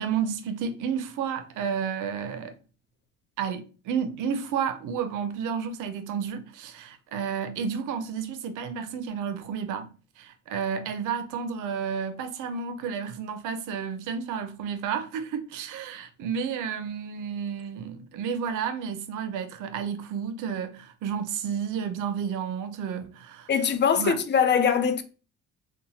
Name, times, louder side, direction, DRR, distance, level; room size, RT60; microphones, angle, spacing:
voice 1, 0.0-2.5 3.4-9.9 10.2-23.5 24.0-24.2, right 7 dB, 85° right, 0.5 m, -31 dB
voice 2, 23.5-25.0, left 7 dB, 35° left, 0.4 m, -22 dB
2.8 x 2.1 x 2.7 m
cardioid pair, 90°, 30 cm